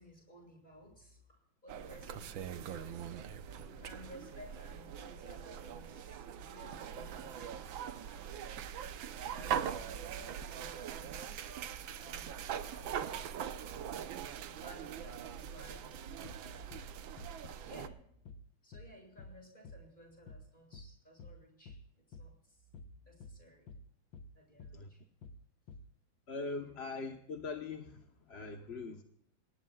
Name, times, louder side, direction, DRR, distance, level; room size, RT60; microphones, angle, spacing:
voice 1, 0.0-3.1 3.5-8.3 9.2-11.3 11.5-16.2 17.6-18.0 18.6-23.7 24.3-25.0 26.5-26.8, equal, 20° left, 1 dB, 7.4 m, -57 dB
sound 1, 1.7-17.9, right 8 dB, 75° right, 1.6 m, -42 dB
sound 2, 6.7-14.1, right 9 dB, 50° right, 1.1 m, -55 dB
sound 3, 16.2-16.5 16.7-16.9 17.2-17.4 17.8-18.0 18.3-18.5 18.7-18.9 19.2-19.4 19.6-19.9 20.3-20.5 20.7-20.9 21.2-21.4 21.7-21.9 22.1-22.3 22.7-22.9 23.2-23.4 23.7-23.9 24.1-24.3 24.6-24.8 25.2-25.4 25.7-25.9, left 2 dB, 75° left, 1.7 m, -50 dB
voice 2, 26.3-29.0, left 3 dB, 40° left, 4 dB, 1.1 m, -42 dB
28.0 x 19.0 x 2.4 m, 0.75 s
omnidirectional pair, 2.2 m